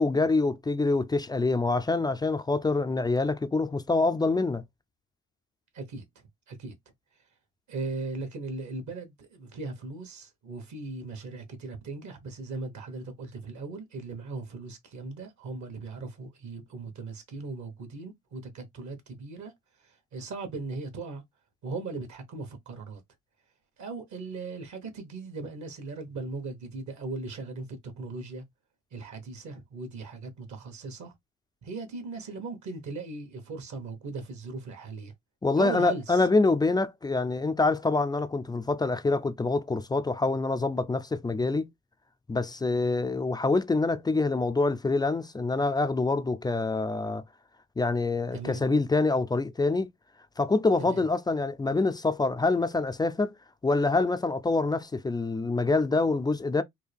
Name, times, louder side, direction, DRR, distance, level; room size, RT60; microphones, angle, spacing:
voice 1, 0.0-4.6 35.4-41.7 42.3-47.2 47.8-49.9 50.4-53.3 53.6-56.6, left 3 dB, 15° left, 0.3 m, -26 dB
voice 2, 5.7-6.0 6.5-6.7 7.7-19.5 19.8-21.2 21.6-23.0 23.8-28.4 28.9-31.1 31.6-35.1 35.6-36.3 48.3-48.6 50.8-51.0, right 3 dB, 60° right, 1.2 m, -38 dB
3.7 x 2.2 x 3.3 m
cardioid pair, 100°, 33 cm